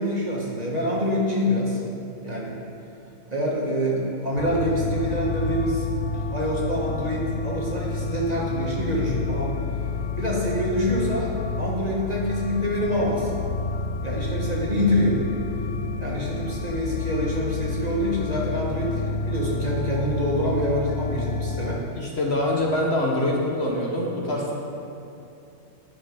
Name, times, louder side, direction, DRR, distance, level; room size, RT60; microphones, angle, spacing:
voice 1, 0.0-1.8 2.2-2.5 3.3-5.8 6.1-9.6 10.2-13.3 14.0-15.2 16.0-21.8, equal, 30° right, -5 dB, 1.3 m, -26 dB
sound 1, 4.4-21.8, left 4 dB, 75° left, 1.0 m, -30 dB
voice 2, 21.9-24.5, left 1 dB, 50° left, -2 dB, 1.2 m, -24 dB
9.4 x 6.4 x 5.1 m, 2.7 s
omnidirectional pair, 1.5 m